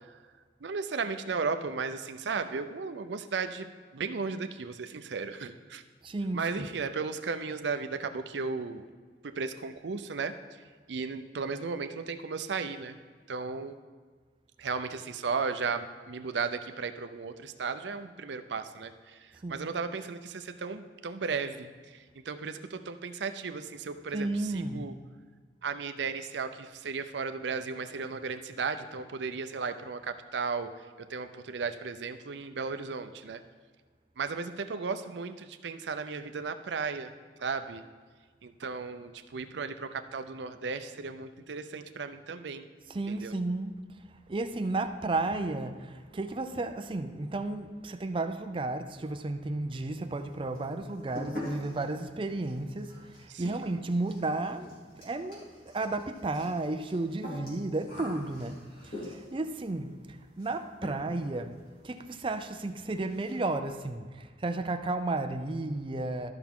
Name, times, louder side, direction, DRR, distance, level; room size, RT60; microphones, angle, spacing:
voice 1, 0.6-3.7 3.9-5.8 6.3-8.8 9.2-10.3 10.9-12.9 13.3-13.7 14.6-22.0 22.3-24.9 25.6-30.7 31.0-33.4 34.2-37.1 37.4-37.8 38.4-42.6 43.1-43.3 53.3-53.6, right 5 dB, 75° right, 0.6 m, -35 dB
voice 2, 6.0-6.7 19.4-19.7 24.1-24.9 42.9-43.7 44.3-66.3, right 2 dB, 30° right, 0.5 m, -33 dB
sound 1, 49.7-50.3 50.5-59.4 60.4-60.6 60.8-61.3 61.6-61.7 62.1-62.2 62.4-62.6 62.9-63.4, left 1 dB, 55° left, 3.0 m, -44 dB
13.5 x 5.9 x 3.7 m
head